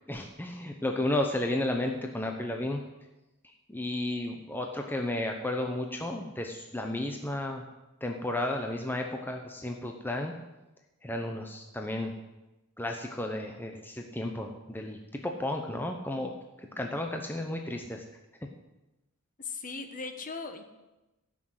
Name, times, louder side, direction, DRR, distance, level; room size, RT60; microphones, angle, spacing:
voice 1, 0.1-2.8 3.7-7.6 8.0-10.3 11.0-12.1 12.8-16.3 16.8-18.0, left 1 dB, 10° left, 3 dB, 0.9 m, -33 dB
voice 2, 19.4-20.6, left 4 dB, 40° left, 7 dB, 1.3 m, -38 dB
15.5 x 6.3 x 8.0 m, 1.0 s
head